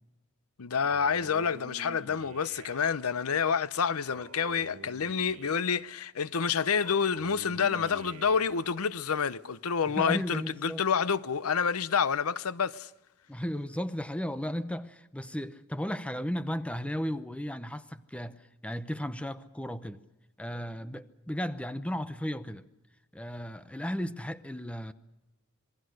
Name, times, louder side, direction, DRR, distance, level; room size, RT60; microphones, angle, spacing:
voice 1, 0.6-12.9, left 6 dB, 85° left, 0.7 m, -28 dB
Male speech man speaking, 0.8-3.0 4.1-5.9 6.8-8.8, right 3 dB, 85° right, 1.9 m, -47 dB
voice 2, 10.0-10.8 13.3-20.0 20.4-22.6 23.1-24.9, equal, 5° left, 0.8 m, -35 dB
27.0 x 21.0 x 6.5 m
head